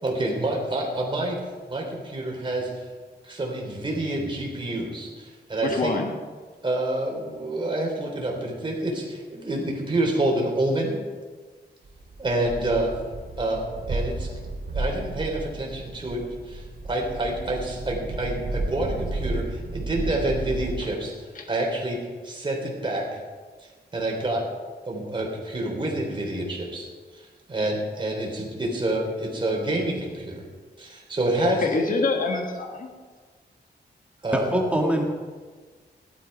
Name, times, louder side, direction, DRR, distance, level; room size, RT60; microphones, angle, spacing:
voice 1, 0.0-1.4 1.7-2.7 3.2-5.9 6.6-11.0 12.2-12.9 13.4-14.3 14.7-21.1 21.5-22.0 22.2-23.1 23.9-24.4 24.9-27.2 27.5-30.4 30.8-31.7 34.2-34.5, right 1 dB, 25° right, -1 dB, 3.4 m, -28 dB
voice 2, 5.6-6.1 21.3-21.4 31.4-32.9, left 3 dB, 50° left, 2 dB, 1.6 m, -25 dB
sound 1, 11.8-20.8, right 2 dB, 65° right, 2.4 m, -33 dB
voice 3, 34.3-35.0, right 1 dB, 5° right, 0 dB, 1.6 m, -23 dB
15.0 x 12.0 x 5.5 m, 1.4 s
wide cardioid pair, 180°, 18 cm